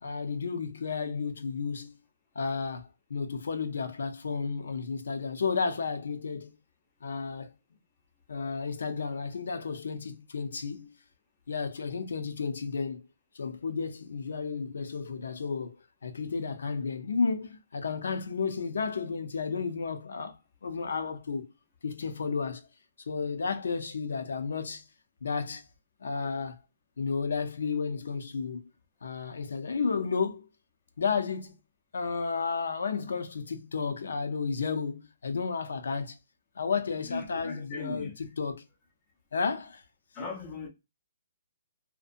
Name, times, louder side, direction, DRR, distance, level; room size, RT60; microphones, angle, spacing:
voice 1, 0.0-2.0 2.3-6.5 7.0-7.5 8.3-10.9 11.5-13.0 13.3-15.8 16.0-21.5 21.8-22.6 23.1-24.8 25.2-25.6 26.0-26.6 27.0-28.7 29.0-30.5 31.0-31.6 31.9-36.2 36.6-38.6 39.3-39.8, left 5 dB, 75° left, 0.6 m, -32 dB
voice 2, 37.1-38.1 40.2-40.7, left 3 dB, 10° left, 0.5 m, -38 dB
2.7 x 2.1 x 2.5 m
hypercardioid pair, 180°, 0 cm